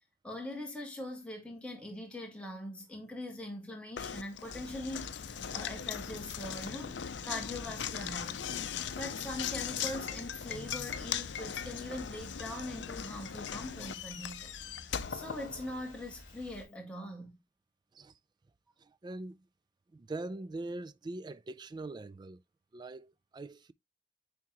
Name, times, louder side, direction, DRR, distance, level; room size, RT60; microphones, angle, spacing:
voice 1, 0.2-8.5 8.9-14.5 15.1-17.4, left 1 dB, 5° left, 1.8 m, -42 dB
Knock, 4.0-16.1, left 8 dB, 75° left, 0.5 m, -39 dB
sound 1, 4.5-16.6, left 1 dB, 45° left, 3.0 m, -53 dB
voice 2, 18.8-19.5 19.9-22.4 22.7-23.7, right 2 dB, 25° right, 0.3 m, -42 dB
9.5 x 3.6 x 3.0 m
head